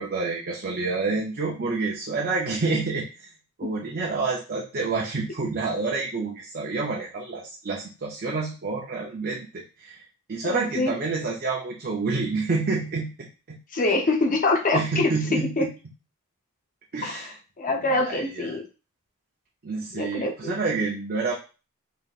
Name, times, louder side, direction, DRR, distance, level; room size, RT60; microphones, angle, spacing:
voice 1, 0.0-3.3 3.6-10.0 10.3-13.6 14.7-15.7 16.9-17.3 17.9-18.6 19.6-21.3, right 3 dB, 40° right, -2 dB, 0.6 m, -28 dB
voice 2, 10.4-10.9 13.7-15.7 17.0-18.7 19.9-20.5, left 2 dB, 40° left, 2 dB, 0.7 m, -25 dB
3.8 x 3.7 x 2.4 m, 0.32 s
head